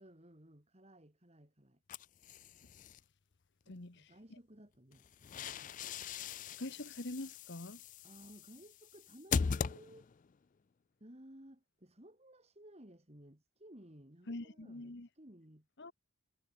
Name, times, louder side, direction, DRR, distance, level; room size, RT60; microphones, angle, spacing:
voice 1, 0.0-1.8 3.6-5.8 8.0-10.1 11.0-15.7, right 1 dB, 30° right, 2.9 m, -58 dB
sound 1, 1.9-3.0 4.9-10.3, left 6 dB, 35° left, 0.3 m, -40 dB
voice 2, 3.7-4.4 6.1-6.3 6.6-7.8 14.3-15.1 15.8-15.9, left 2 dB, 50° left, 1.4 m, -45 dB
head